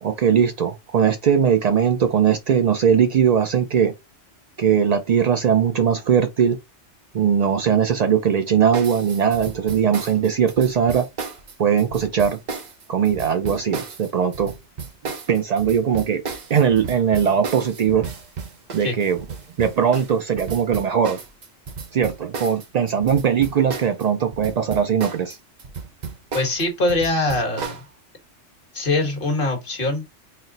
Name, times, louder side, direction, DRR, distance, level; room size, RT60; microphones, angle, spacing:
voice 1, 0.0-3.9 4.6-6.6 7.1-11.1 11.6-12.4 12.9-14.5 15.3-16.2 16.5-18.1 18.7-19.2 19.6-21.2 21.9-25.4, right 7 dB, 75° right, 0.3 m, -20 dB
sound 1, 8.7-24.1 24.3-27.8, right 5 dB, 45° right, 0.7 m, -34 dB
voice 2, 26.3-27.8 28.7-30.1, left 2 dB, 50° left, 1.5 m, -23 dB
4.3 x 2.0 x 3.8 m
omnidirectional pair, 1.2 m